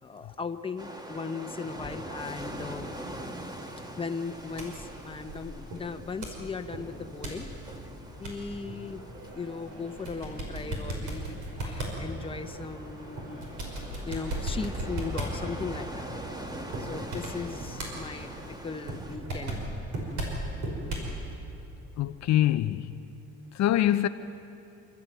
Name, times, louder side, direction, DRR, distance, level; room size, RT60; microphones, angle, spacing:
voice 1, 0.0-2.9 4.0-7.5 8.2-9.1 9.3-13.4 14.1-16.1 16.9-18.3 18.6-19.6 20.0-20.1, left 4 dB, 20° left, 1.1 m, -37 dB
sound 1, 0.8-19.2, right 1 dB, 15° right, 1.6 m, -43 dB
sound 2, 4.2-21.2, right 1 dB, 70° right, 5.7 m, -37 dB
voice 2, 22.0-23.0 23.5-24.1, left 13 dB, 60° left, 0.6 m, -24 dB
28.0 x 13.5 x 9.2 m
cardioid pair, 135°, 30 cm